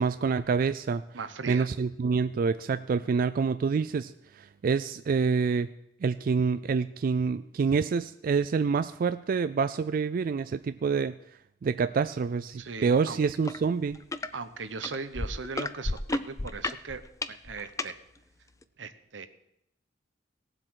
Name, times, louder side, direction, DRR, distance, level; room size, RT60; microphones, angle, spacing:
voice 1, 0.0-1.0 1.5-5.7 6.0-11.2 11.6-14.0, right 5 dB, 50° right, 12 dB, 0.3 m, -27 dB
voice 2, 1.1-1.7 12.6-13.2 14.3-17.9 18.8-19.3, right 4 dB, 85° right, 10 dB, 0.9 m, -38 dB
sound 1, 13.4-13.6 13.9-14.3 14.8-17.9 18.6-18.7, left 2 dB, 15° left, 0.4 m, -32 dB
18.0 x 7.5 x 4.8 m, 0.77 s
head